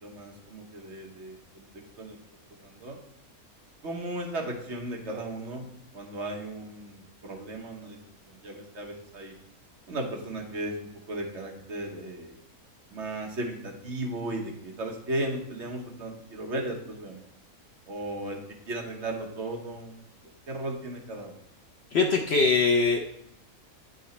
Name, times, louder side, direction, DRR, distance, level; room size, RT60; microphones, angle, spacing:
voice 1, 0.0-1.7 2.0-2.2 2.6-3.0 3.8-5.7 5.9-8.0 8.3-9.3 9.9-12.3 12.9-17.3 17.9-18.4 18.6-20.0 20.5-21.4, right 1 dB, 55° right, 1 dB, 1.2 m, -36 dB
voice 2, 21.9-23.0, left 4 dB, 60° left, 2 dB, 0.7 m, -22 dB
9.0 x 3.8 x 4.1 m, 0.75 s
omnidirectional pair, 1.5 m